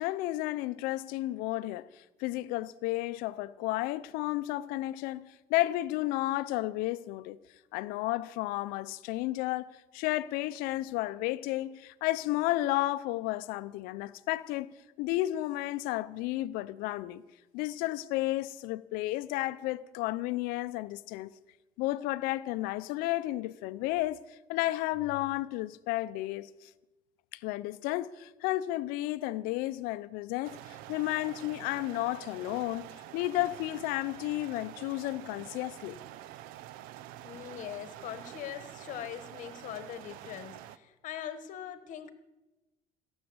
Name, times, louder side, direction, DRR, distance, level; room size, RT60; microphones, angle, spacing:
voice 1, 0.0-7.4 7.7-17.2 17.5-21.3 21.8-26.7 27.3-32.9 33.1-36.0, left 17 dB, 85° left, 0.5 m, -32 dB
sound 1, 30.4-40.8, right 13 dB, 85° right, 0.6 m, -47 dB
voice 2, 37.2-42.1, left 10 dB, 60° left, 1.3 m, -42 dB
16.5 x 7.1 x 7.9 m
cardioid pair, 110°, 14 cm